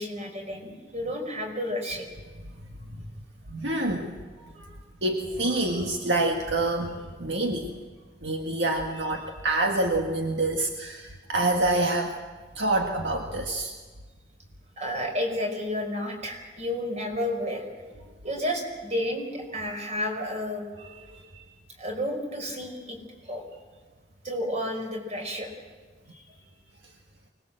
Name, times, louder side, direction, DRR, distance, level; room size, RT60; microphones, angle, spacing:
voice 1, 0.0-2.1 4.5-4.6 14.8-17.6 18.2-20.9 21.8-23.0 23.2-23.4 24.2-25.5 26.1-26.2, left 1 dB, 40° right, 3 dB, 5.3 m, -31 dB
voice 2, 3.5-4.2 4.6-4.7 5.0-7.7 8.2-12.1 12.6-13.7 20.9-21.4, right 2 dB, 70° right, 2 dB, 1.8 m, -27 dB
24.5 x 20.0 x 7.7 m, 1.4 s
head